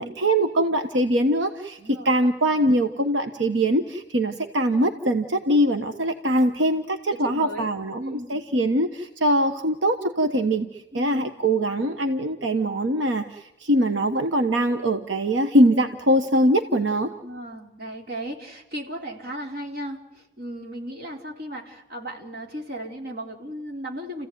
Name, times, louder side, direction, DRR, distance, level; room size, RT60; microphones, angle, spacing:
voice 1, 0.0-8.0 8.3-17.1, right 1 dB, 85° right, 6 dB, 1.2 m, -22 dB
voice 2, 1.8-2.1 7.1-7.7 8.0-8.4 10.9-11.3 17.2-24.3, right 1 dB, 55° right, 1 dB, 3.9 m, -36 dB
30.0 x 16.0 x 9.4 m, 0.93 s
head